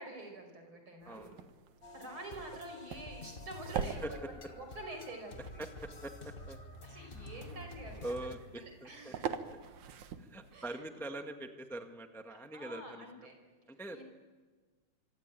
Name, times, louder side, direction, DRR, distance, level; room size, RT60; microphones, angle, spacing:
voice 1, 0.0-1.2 1.9-4.2 4.6-5.6 6.8-8.3 8.8-9.3 10.5-10.8 12.3-13.3 13.9-14.0, right 1 dB, 40° right, 5 dB, 5.9 m, -47 dB
voice 2, 1.0-1.5 4.0-4.1 5.6-6.6 8.0-9.1 10.2-13.0 13.7-14.0, right 1 dB, ahead, 5 dB, 0.5 m, -43 dB
sound 1, 1.0-10.6, right 7 dB, 75° right, 2.7 m, -45 dB
sound 2, 1.8-8.3, left 2 dB, 35° left, 0.9 m, -49 dB
26.0 x 24.0 x 9.1 m, 1.4 s
omnidirectional pair, 3.5 m